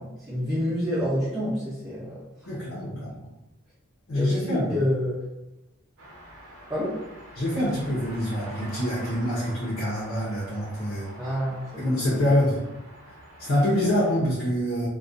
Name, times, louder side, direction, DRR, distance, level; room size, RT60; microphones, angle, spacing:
voice 1, 0.0-2.5 2.9-3.0 4.1-5.2 6.7-7.0 11.2-12.4 13.8-13.9, equal, 10° right, -11 dB, 0.6 m, -29 dB
voice 2, 2.5-3.3 4.1-4.8 7.4-11.1 11.8-12.6 13.1-14.9, left 1 dB, 60° left, -7 dB, 0.7 m, -26 dB
sound 1, 6.0-14.2, equal, 90° right, 0.6 m, -45 dB
2.4 x 2.3 x 2.5 m, 0.96 s
head